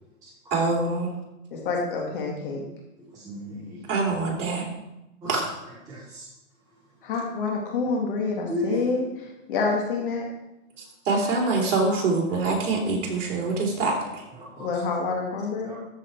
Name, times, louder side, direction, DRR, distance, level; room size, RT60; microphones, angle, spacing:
voice 1, 0.5-1.1 3.9-4.6 5.3-5.4 10.8-14.2, right 3 dB, 55° right, -2 dB, 3.5 m, -25 dB
voice 2, 1.5-2.6 7.0-9.0 9.5-10.2 14.6-15.7, left 4 dB, 40° left, 0 dB, 2.1 m, -27 dB
voice 3, 3.1-3.9 5.2-5.5 5.8-6.3 8.5-8.8 9.7-9.8 14.3-14.7 15.6-15.8, equal, 10° right, -7 dB, 0.9 m, -35 dB
13.5 x 4.8 x 4.5 m, 0.94 s
hypercardioid pair, 160°, 43 cm